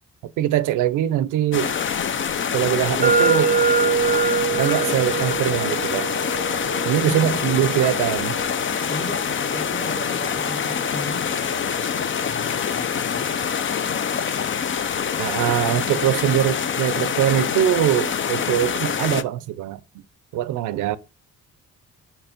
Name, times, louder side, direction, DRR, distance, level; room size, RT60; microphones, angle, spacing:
voice 1, 0.2-1.8 2.5-3.5 4.5-6.1 6.9-8.4 15.2-19.8 20.3-21.0, right 12 dB, 85° right, 0.6 m, -22 dB
sound 1, 1.5-19.2, left 7 dB, 40° left, 0.6 m, -25 dB
sound 2, 3.0-10.9, right 5 dB, 25° right, 0.6 m, -25 dB
voice 2, 7.1-7.4 8.9-11.9 12.2-13.3, left 1 dB, 25° left, 1.3 m, -35 dB
5.4 x 4.5 x 5.1 m
cardioid pair, 90°, 30 cm